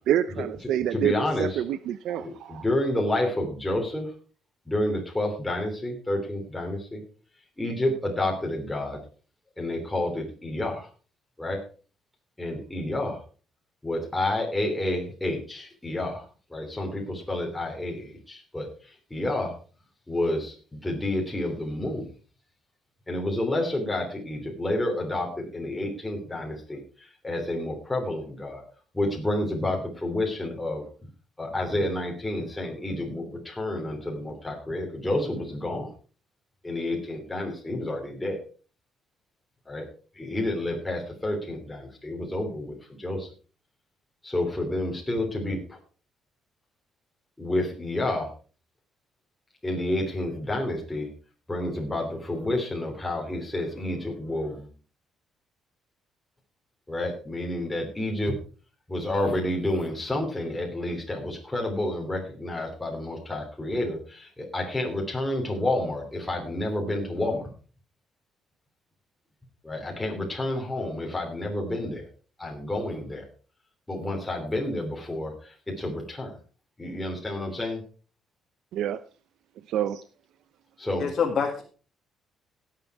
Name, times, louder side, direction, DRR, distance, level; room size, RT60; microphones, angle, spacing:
voice 1, 0.1-2.6 78.7-79.0 79.7-80.0, right 10 dB, 75° right, 13 dB, 0.6 m, -27 dB
voice 2, 0.9-1.5 2.2-4.1 4.7-7.0 7.6-9.0 9.6-10.9 11.4-11.6 12.4-13.2 13.8-16.2 16.5-18.7 19.1-19.5 20.1-22.1 23.1-28.6 28.9-30.8 31.4-35.9 36.6-38.4 39.7-39.8 40.2-43.3 44.2-45.8 47.4-48.3 49.6-51.1 51.5-54.7 56.9-58.3 58.9-67.5 69.6-72.0 72.4-73.2 73.9-76.3 76.8-77.8 80.8-81.1, left 1 dB, 10° left, 0 dB, 3.0 m, -29 dB
voice 3, 81.0-81.6, left 6 dB, 45° left, 0 dB, 2.1 m, -25 dB
17.5 x 7.6 x 4.7 m, 0.39 s
cardioid pair, 155°, 0 cm